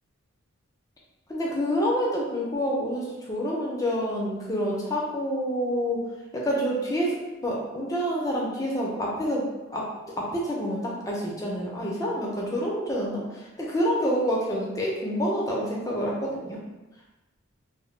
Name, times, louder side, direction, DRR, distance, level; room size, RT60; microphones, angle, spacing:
voice 1, 1.3-6.0 6.3-7.2 7.4-9.9 10.2-16.6, equal, 15° left, -3 dB, 0.4 m, -27 dB
2.1 x 2.0 x 3.1 m, 1.1 s
head